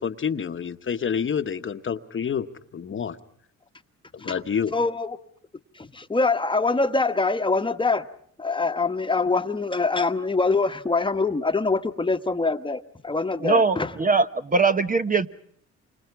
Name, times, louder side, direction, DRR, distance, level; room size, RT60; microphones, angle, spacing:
voice 1, 0.0-2.5 2.7-3.1 4.2-4.7, left 7 dB, 40° left, 1.2 m, -28 dB
voice 2, 4.7-5.2 5.7-8.1 8.4-14.0, left 3 dB, 15° left, 1.3 m, -24 dB
voice 3, 13.4-15.3, right 4 dB, 25° right, 1.0 m, -21 dB
28.5 x 25.5 x 4.7 m
cardioid pair, 90°, 30 cm